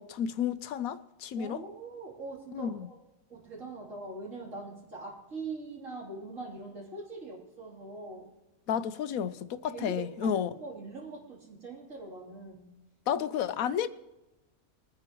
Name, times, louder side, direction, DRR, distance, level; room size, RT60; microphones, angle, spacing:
voice 1, 0.0-1.6 2.5-2.9 8.7-10.5 13.1-13.9, left 8 dB, 80° left, 1.1 m, -31 dB
voice 2, 1.3-2.9 3.3-8.3 9.7-12.7, right 3 dB, 60° right, 3.7 m, -42 dB
23.0 x 9.8 x 3.0 m
omnidirectional pair, 1.5 m